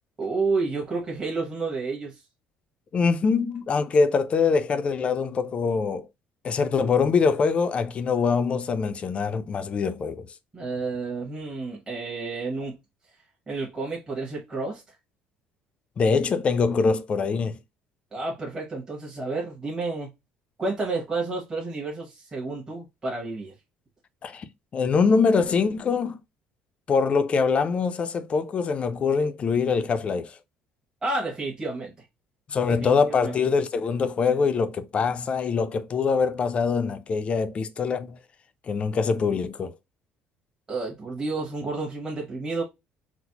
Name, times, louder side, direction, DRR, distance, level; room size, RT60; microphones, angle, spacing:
voice 1, 0.2-2.2 10.5-12.8 13.5-14.8 18.1-20.1 20.6-23.5 31.0-31.9 32.7-33.3 40.7-42.6, right 3 dB, 20° right, 1.1 m, -30 dB
voice 2, 2.9-6.1 6.4-10.3 16.0-17.6 24.2-24.5 24.7-26.2 26.9-30.4 32.5-38.2 38.7-39.7, left 5 dB, 35° left, 0.4 m, -24 dB
4.0 x 2.0 x 2.8 m
cardioid pair, 120°, 3 cm